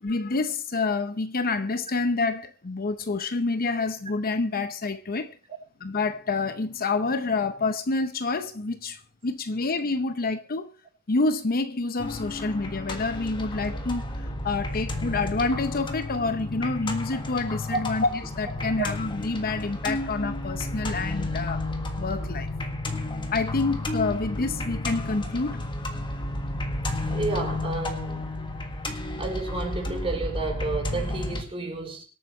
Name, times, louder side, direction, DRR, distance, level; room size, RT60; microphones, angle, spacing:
voice 1, 0.0-5.4 5.8-10.7 11.1-21.6 22.0-22.5 23.3-25.6, left 3 dB, 40° left, 0.8 m, -28 dB
sound 1, 12.0-31.4, left 2 dB, 20° left, 1.7 m, -32 dB
voice 2, 27.1-28.3 29.2-32.0, right 3 dB, 25° right, 3.8 m, -31 dB
24.5 x 8.8 x 3.1 m
head